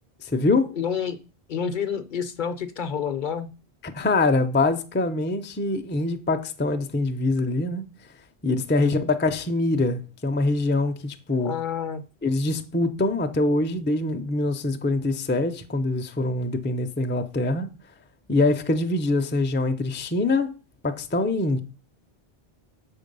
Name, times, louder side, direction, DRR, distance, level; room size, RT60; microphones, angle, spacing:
voice 1, 0.2-0.7 3.8-7.9 8.4-11.5 12.2-17.7 18.3-20.5 20.8-21.6, left 2 dB, 15° left, 0.4 m, -24 dB
voice 2, 0.7-1.2 1.5-3.5 8.8-9.1 11.4-12.0, left 7 dB, 55° left, 0.7 m, -29 dB
7.1 x 4.4 x 5.3 m
omnidirectional pair, 1.1 m